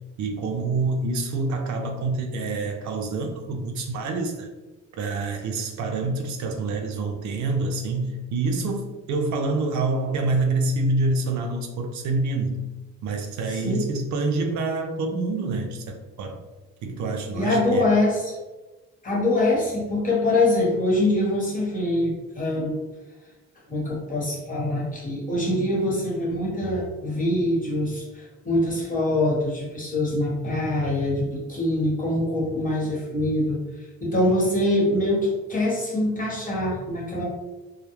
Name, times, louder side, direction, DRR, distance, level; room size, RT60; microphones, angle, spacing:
voice 1, 0.2-4.5 5.0-12.7 13.0-16.4 16.8-17.8, right 3 dB, 70° right, 3 dB, 0.5 m, -27 dB
voice 2, 13.5-13.8 17.3-18.4 19.0-22.8 23.7-33.6 34.0-37.2, left 1 dB, 25° left, -4 dB, 1.0 m, -24 dB
2.3 x 2.0 x 2.9 m, 1.1 s
cardioid pair, 90°, 30 cm